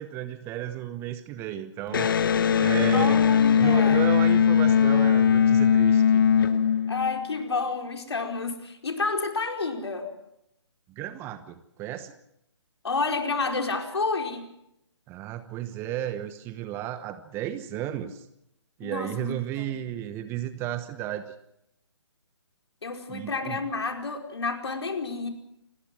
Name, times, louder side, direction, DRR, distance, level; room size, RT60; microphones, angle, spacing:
voice 1, 0.0-2.1 2.6-3.2 3.6-6.3 10.9-12.1 15.1-18.2 18.8-21.3 23.1-23.6, right 12 dB, 15° right, 12 dB, 1.0 m, -33 dB
Electric guitar, 1.9-7.4, left 7 dB, 45° left, 1.5 m, -20 dB
voice 2, 2.9-4.0 6.9-10.1 12.8-14.4 18.8-19.7 22.8-25.3, left 4 dB, 65° left, 4 dB, 4.8 m, -30 dB
29.0 x 20.0 x 6.2 m, 0.80 s
figure-of-eight pair, 140°, 15 cm